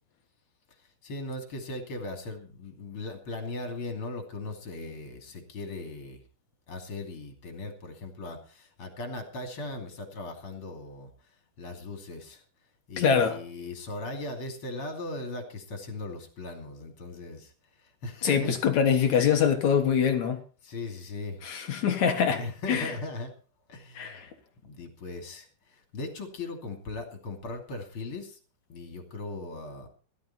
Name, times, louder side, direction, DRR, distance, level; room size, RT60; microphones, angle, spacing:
voice 1, 0.7-6.2 6.7-12.4 12.9-18.6 20.6-21.4 22.3-23.3 23.7-24.3 24.6-28.4 28.7-29.9, left 2 dB, 35° left, 3.0 m, -38 dB
voice 2, 13.0-13.4 18.2-20.4 21.4-22.4 22.7-22.9 24.0-24.3, left 7 dB, 55° left, 2.2 m, -24 dB
17.5 x 12.5 x 4.3 m
omnidirectional pair, 4.9 m